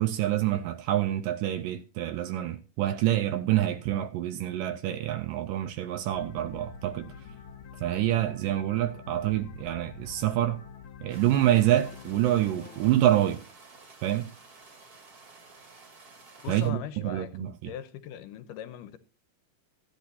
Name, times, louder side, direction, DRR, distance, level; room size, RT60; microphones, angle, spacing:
voice 1, 0.0-7.1 7.8-10.6 11.0-13.5 14.0-14.3 16.5-17.7, right 13 dB, 80° right, 2.3 m, -27 dB
sound 1, 6.1-12.9, left 6 dB, 65° left, 1.3 m, -46 dB
sound 2, 11.1-16.7, right 3 dB, 35° right, 1.6 m, -52 dB
voice 2, 16.4-19.0, left 10 dB, 85° left, 2.4 m, -40 dB
16.0 x 10.5 x 2.8 m
omnidirectional pair, 3.8 m